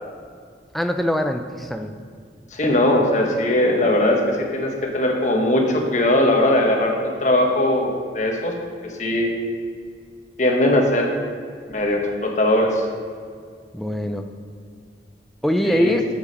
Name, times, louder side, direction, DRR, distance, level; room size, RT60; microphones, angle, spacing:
voice 1, 0.7-1.9 13.7-14.3 15.4-16.0, equal, ahead, 5 dB, 0.4 m, -22 dB
voice 2, 2.5-8.5 8.8-9.3 10.4-11.1 11.7-12.8 15.6-16.0, left 1 dB, 40° left, 1 dB, 1.2 m, -20 dB
7.3 x 6.9 x 5.3 m, 2.1 s
head